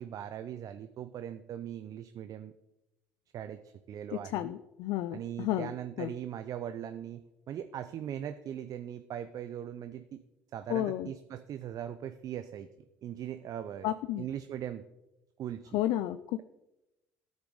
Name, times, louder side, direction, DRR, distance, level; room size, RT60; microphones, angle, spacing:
voice 1, 0.0-2.5 3.3-3.6 3.9-4.5 5.1-10.2 10.5-12.7 13.0-13.9 14.2-14.8 15.4-15.8, right 10 dB, 55° right, 10 dB, 0.5 m, -40 dB
voice 2, 4.1-5.7 6.0-6.1 10.7-11.1 13.8-14.3 15.7-16.4, left 13 dB, 70° left, 12 dB, 0.4 m, -32 dB
13.0 x 6.1 x 4.0 m, 0.94 s
hypercardioid pair, 70°, 7 cm